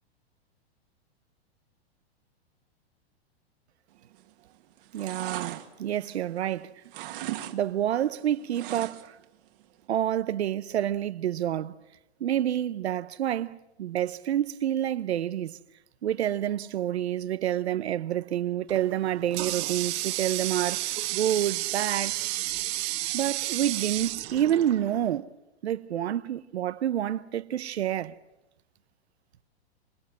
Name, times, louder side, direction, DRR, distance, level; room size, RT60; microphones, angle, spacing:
sound 1, 4.1-4.5 4.8-6.5 6.8-7.6 7.8-9.2 9.6-9.7, right 14 dB, 55° right, 1.9 m, -38 dB
voice 1, 4.9-6.7 7.5-9.2 9.9-11.7 12.2-15.6 16.0-22.1 23.1-25.3 25.6-28.2, right 11 dB, 90° right, 0.8 m, -28 dB
Water tap faucet, 18.7-25.2, right 17 dB, 40° right, 1.4 m, -32 dB
26.5 x 19.0 x 7.4 m
hypercardioid pair, 140°, 32 cm